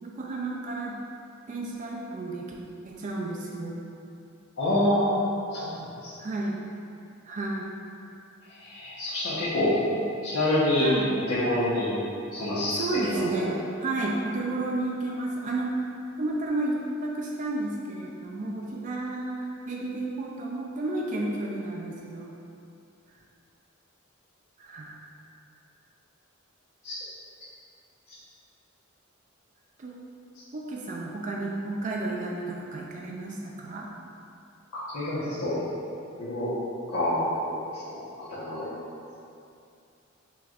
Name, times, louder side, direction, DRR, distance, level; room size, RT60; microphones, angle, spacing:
voice 1, 0.0-0.9 1.5-2.5 2.8-3.8 6.2-6.6 7.3-7.7 9.9-10.0 10.8-11.1 12.7-15.9 16.2-22.3 24.6-25.0 29.8-30.0 30.5-33.9, right 2 dB, 35° right, -2 dB, 0.4 m, -32 dB
voice 2, 4.6-5.2 5.5-6.1 8.5-9.7 10.2-10.9 11.3-11.9 12.3-13.5 26.8-26.9 34.9-35.6 36.2-36.5 36.9-38.0 38.3-38.7, left 1 dB, 80° left, -11 dB, 0.9 m, -27 dB
5.8 x 3.1 x 2.4 m, 2.6 s
head